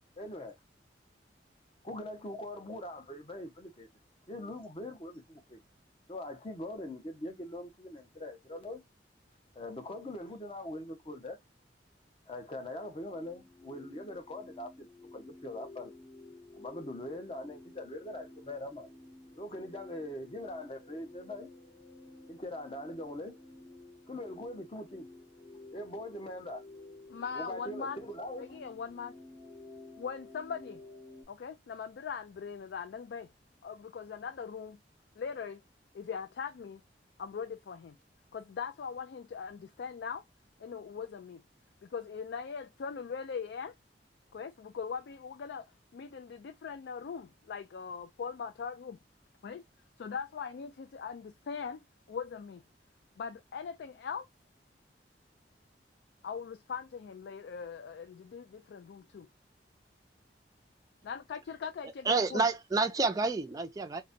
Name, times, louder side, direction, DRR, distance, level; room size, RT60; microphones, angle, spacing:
voice 1, 0.2-0.6 1.8-3.9 4.3-5.6 6.1-8.8 9.5-11.4 12.3-14.9 15.1-15.9 16.6-18.9 19.4-21.5 22.3-23.4 24.1-25.1 25.7-26.6 27.3-28.6, left 1 dB, 30° left, 0.8 m, -42 dB
sound 1, 13.0-31.2, left 2 dB, 50° left, 2.0 m, -52 dB
voice 2, 27.1-28.0 28.4-29.1 30.0-30.8 31.3-33.3 33.6-34.8 35.2-35.6 35.9-36.8 37.2-38.0 38.3-40.2 40.6-41.4 41.8-43.7 44.3-45.7 45.9-49.0 49.4-49.6 50.0-51.8 52.1-52.6 53.2-54.3 56.2-59.3 61.0-62.4, left 6 dB, 65° left, 0.3 m, -40 dB
voice 3, 62.1-64.0, right 3 dB, 20° right, 0.4 m, -29 dB
4.0 x 2.1 x 2.5 m
head